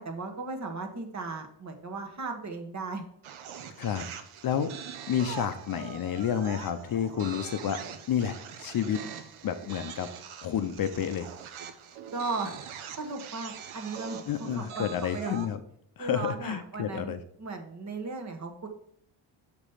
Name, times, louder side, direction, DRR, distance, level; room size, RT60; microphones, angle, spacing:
voice 1, 0.0-3.0 12.1-12.6 13.0-15.4 16.0-18.7, right 3 dB, 35° right, 5 dB, 1.2 m, -36 dB
sound 1, 3.2-15.6, right 8 dB, 85° right, 0.9 m, -43 dB
voice 2, 5.1-7.8 8.1-9.0 9.4-10.1 10.4-11.3 14.3-15.6 16.0-17.2, left 9 dB, 45° left, 9 dB, 0.6 m, -30 dB
6.9 x 5.0 x 5.5 m, 0.68 s
cardioid pair, 160°, 48 cm